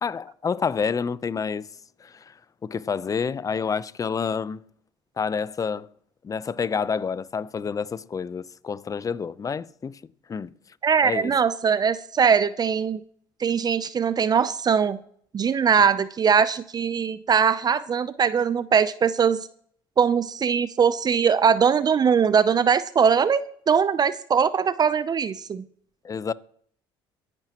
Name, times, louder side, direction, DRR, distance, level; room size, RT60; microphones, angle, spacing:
voice 1, 0.0-1.7 2.0-2.3 2.6-4.6 5.2-5.9 6.2-10.0 10.3-10.5 11.0-11.4 26.0-26.3, left 6 dB, 30° left, 0.7 m, -28 dB
voice 2, 10.8-13.0 13.4-15.0 15.3-19.5 20.0-23.4 23.7-25.6, right 6 dB, 35° right, 0.6 m, -21 dB
24.0 x 10.5 x 3.0 m
hypercardioid pair, 70°, 11 cm